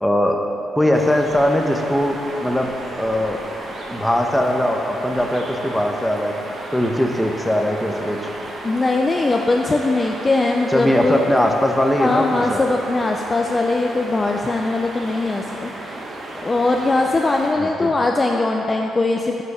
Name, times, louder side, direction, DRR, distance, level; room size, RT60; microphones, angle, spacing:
voice 1, 0.0-0.4 0.8-2.7 3.0-3.4 3.9-6.3 6.7-8.3 10.7-12.6 17.6-17.9, left 1 dB, 5° left, 2 dB, 0.9 m, -20 dB
sound 1, 0.9-17.5, right 1 dB, 45° right, 1.4 m, -34 dB
voice 2, 8.6-11.2 12.0-16.0 16.4-19.4, left 2 dB, 25° left, 2 dB, 0.5 m, -20 dB
8.3 x 5.2 x 6.8 m, 2.9 s
cardioid pair, 90°, 0 cm